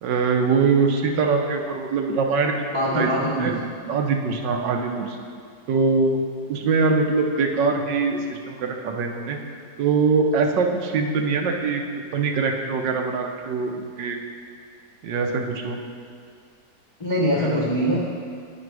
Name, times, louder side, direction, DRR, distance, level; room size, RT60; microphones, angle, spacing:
voice 1, 0.0-2.7 2.9-3.1 3.4-3.5 3.9-5.2 5.7-6.2 6.5-9.4 9.8-11.8 12.1-14.2 15.0-15.8 17.4-17.7, right 4 dB, 85° right, 3 dB, 1.4 m, -23 dB
voice 2, 2.7-3.6 17.0-18.0, equal, 40° left, -4 dB, 0.4 m, -23 dB
8.7 x 5.3 x 4.7 m, 2.2 s
omnidirectional pair, 1.9 m